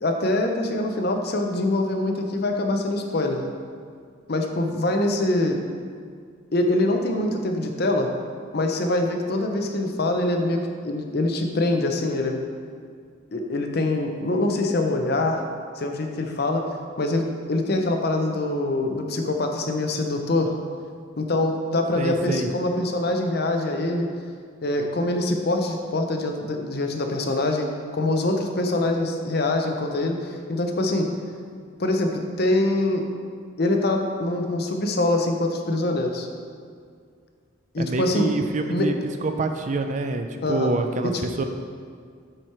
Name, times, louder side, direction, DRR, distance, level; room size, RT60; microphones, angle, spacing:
voice 1, 0.0-3.5 4.3-5.6 6.5-8.1 8.5-12.4 13.3-15.4 15.8-16.6 17.0-20.5 21.2-24.1 24.6-27.7 27.9-31.1 31.8-33.0 33.6-36.3 37.7-38.3 38.7-38.9 40.4-40.7 41.0-41.1, left 2 dB, 50° left, 4 dB, 0.6 m, -24 dB
voice 2, 22.0-22.5 37.8-38.9 39.2-41.4, right 3 dB, 35° right, 6 dB, 0.3 m, -26 dB
7.7 x 4.5 x 4.6 m, 2.1 s
head